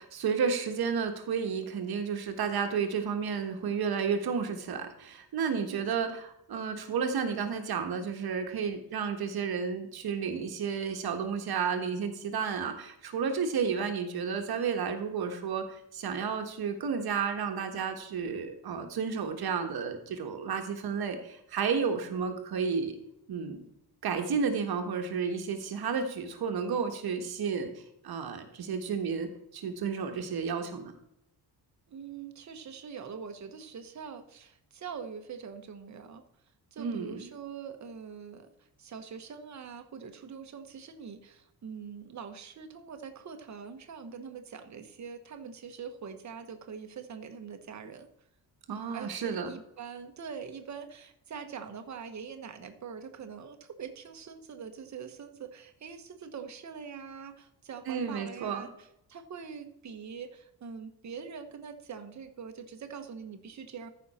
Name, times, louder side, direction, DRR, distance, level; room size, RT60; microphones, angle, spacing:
voice 1, 0.0-23.0 23.3-23.6 24.0-31.0 36.8-37.3 48.7-49.5 57.9-58.7, right 6 dB, 70° right, 5 dB, 1.4 m, -32 dB
voice 2, 5.7-6.2 31.9-36.2 36.7-48.1 48.9-63.9, right 6 dB, 45° right, 7 dB, 1.2 m, -43 dB
14.0 x 5.7 x 4.2 m, 0.80 s
wide cardioid pair, 165°, 38 cm